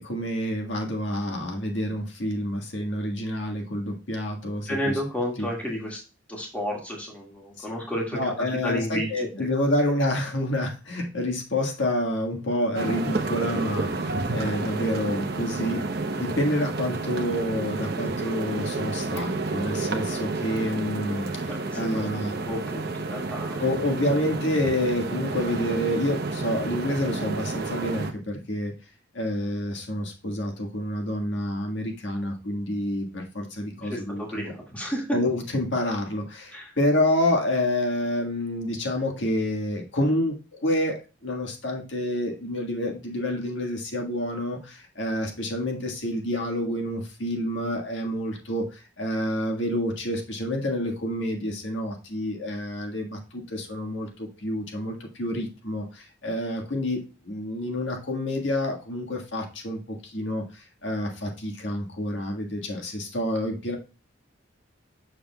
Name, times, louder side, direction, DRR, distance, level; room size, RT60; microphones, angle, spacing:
voice 1, 0.0-5.0 5.4-5.5 7.6-7.7 8.1-15.9 16.2-22.3 23.6-28.7 29.1-34.5 35.1-63.8, left 1 dB, 70° left, 2 dB, 1.6 m, -28 dB
voice 2, 4.7-6.0 6.3-8.3 8.6-9.5 21.5-23.7 33.9-35.0 36.5-36.7, equal, 5° left, -3 dB, 1.9 m, -32 dB
sound 1, 12.8-28.1, right 3 dB, 55° right, 0.8 m, -30 dB
7.5 x 6.7 x 2.3 m, 0.32 s
head